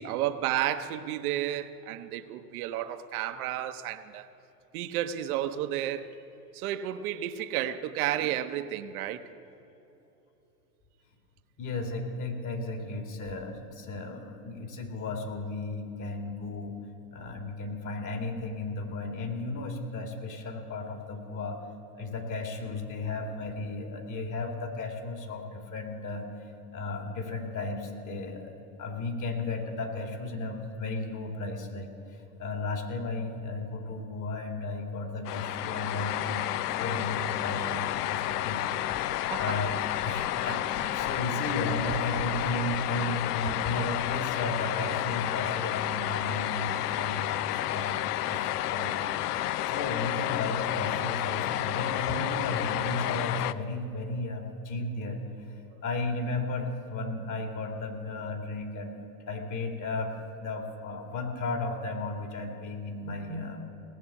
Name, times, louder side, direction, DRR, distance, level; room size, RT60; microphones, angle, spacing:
voice 1, 0.0-4.3 4.7-6.1 6.5-9.2 39.3-39.6, right 12 dB, 65° right, 0.9 m, -32 dB
voice 2, 11.6-16.8 17.1-21.6 21.9-39.1 39.4-39.7 40.0-49.1 49.7-63.7, left 2 dB, 40° left, 2.4 m, -34 dB
sound 1, 35.2-53.5, left 14 dB, 75° left, 0.6 m, -31 dB
18.5 x 7.6 x 7.2 m
hypercardioid pair, 95°, 47 cm